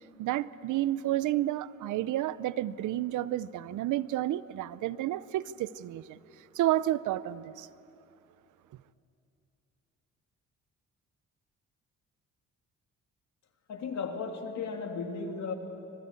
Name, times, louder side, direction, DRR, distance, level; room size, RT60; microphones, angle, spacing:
voice 1, 0.0-7.7, right 14 dB, 80° right, 0.7 m, -31 dB
voice 2, 13.7-15.5, left 5 dB, 65° left, 3.1 m, -35 dB
26.0 x 22.0 x 8.4 m
cardioid pair, 90°, 30 cm